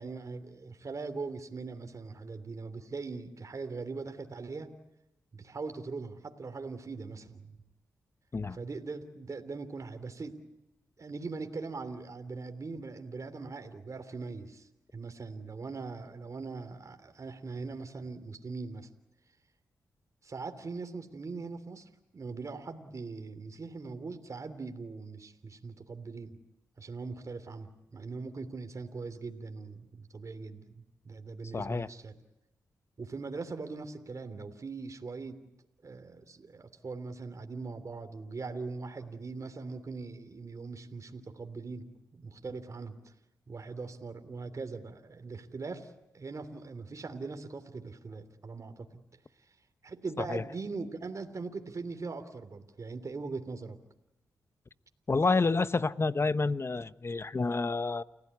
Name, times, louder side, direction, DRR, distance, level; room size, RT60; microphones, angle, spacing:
voice 1, 0.0-4.7 5.3-7.6 8.5-10.4 11.0-18.9 20.2-26.3 26.8-32.1 33.0-35.4 35.8-41.8 42.1-43.1 43.5-49.0 49.8-53.8, right 4 dB, 50° right, 3.1 m, -41 dB
voice 2, 31.5-31.9 50.3-50.4 55.1-58.0, left 3 dB, 35° left, 1.0 m, -29 dB
30.0 x 15.5 x 9.7 m
cardioid pair, 50°, 7 cm